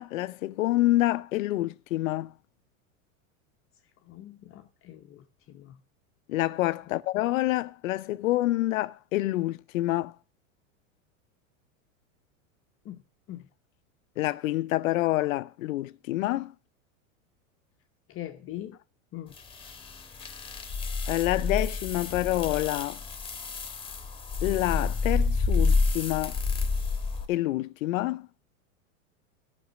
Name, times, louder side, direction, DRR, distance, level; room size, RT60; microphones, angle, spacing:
voice 1, 0.0-2.3 6.3-10.1 14.2-16.5 21.1-23.0 24.4-26.4 27.3-28.3, left 17 dB, 75° left, 0.6 m, -27 dB
voice 2, 4.1-5.8 12.8-13.0 13.3-13.5 18.1-18.8 19.1-19.3, left 13 dB, 35° left, 0.9 m, -42 dB
sound 1, 19.4-27.3, left 4 dB, 15° left, 1.5 m, -29 dB
13.0 x 6.2 x 6.1 m
hypercardioid pair, 120°, 40 cm